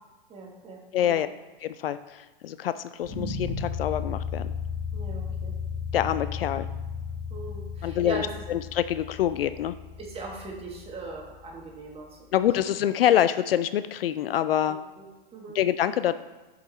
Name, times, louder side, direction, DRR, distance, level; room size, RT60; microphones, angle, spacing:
voice 1, 0.3-1.2 4.9-5.5 7.3-8.3 10.0-12.2 12.5-12.6 14.6-15.1 15.3-15.6, right 3 dB, 20° right, -1 dB, 1.7 m, -40 dB
voice 2, 0.9-1.3 1.6-4.5 5.9-6.7 7.8-9.8 12.3-14.8 15.5-16.1, left 11 dB, 70° left, 13 dB, 0.4 m, -26 dB
sound 1, 3.0-12.1, left 6 dB, 10° left, 1.1 m, -35 dB
6.6 x 5.2 x 4.2 m, 1.2 s
hypercardioid pair, 110°, 30 cm